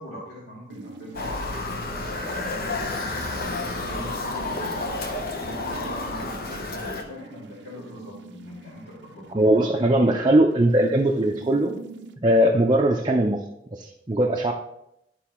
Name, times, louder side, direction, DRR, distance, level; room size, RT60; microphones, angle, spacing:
voice 1, 0.0-1.5 2.0-2.8 3.3-6.3 6.6-9.7, equal, 75° left, -6 dB, 2.1 m, -42 dB
sound 1, 0.7-12.1, right 3 dB, 85° right, 0.7 m, -45 dB
Motor vehicle (road) / Siren, 1.1-7.0, left 2 dB, 60° left, 1.0 m, -30 dB
voice 2, 9.3-11.7 12.2-13.4 13.7-14.5, right 1 dB, 25° right, 0 dB, 0.6 m, -20 dB
11.5 x 4.5 x 3.0 m, 0.80 s
head